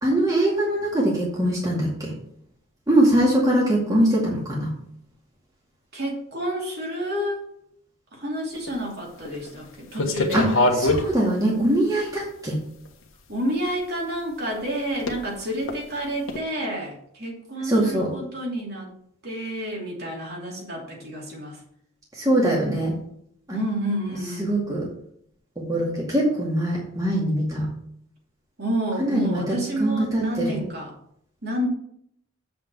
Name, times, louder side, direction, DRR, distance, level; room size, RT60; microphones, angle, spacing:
voice 1, 0.0-2.1 2.9-4.7 10.3-10.5 10.8-12.6 17.6-18.1 22.2-22.9 23.5-23.6 24.4-24.9 25.7-27.7 29.0-30.6, right 1 dB, 15° right, -4 dB, 2.2 m, -22 dB
voice 2, 5.9-7.5 8.1-10.5 13.3-18.9 19.2-21.6 23.5-24.5 28.6-30.9 31.4-31.7, equal, 45° right, -2 dB, 2.9 m, -29 dB
sound 1, 8.5-8.7 9.3-9.5 9.9-11.0 11.8-11.9 12.9-13.0 15.0-15.2 15.6-15.7 16.3-16.4, left 2 dB, 70° left, 1.4 m, -23 dB
7.8 x 5.8 x 6.9 m, 0.69 s
head